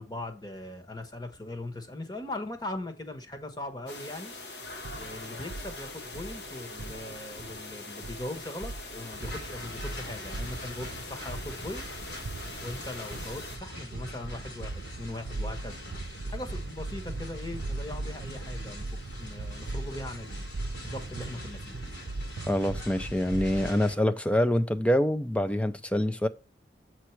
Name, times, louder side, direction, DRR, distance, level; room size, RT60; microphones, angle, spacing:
voice 1, 0.0-4.3 4.9-11.8 12.6-15.8 16.3-18.9 19.2-20.5 20.8-21.8, left 1 dB, 25° left, 1.3 m, -40 dB
sound 1, 3.9-13.6, left 2 dB, 70° left, 1.6 m, -43 dB
sound 2, 4.6-23.7, right 2 dB, 80° right, 0.5 m, -39 dB
sound 3, 9.1-24.0, equal, 85° left, 3.1 m, -43 dB
voice 2, 22.5-26.3, equal, 5° left, 0.5 m, -26 dB
8.2 x 4.6 x 4.6 m
head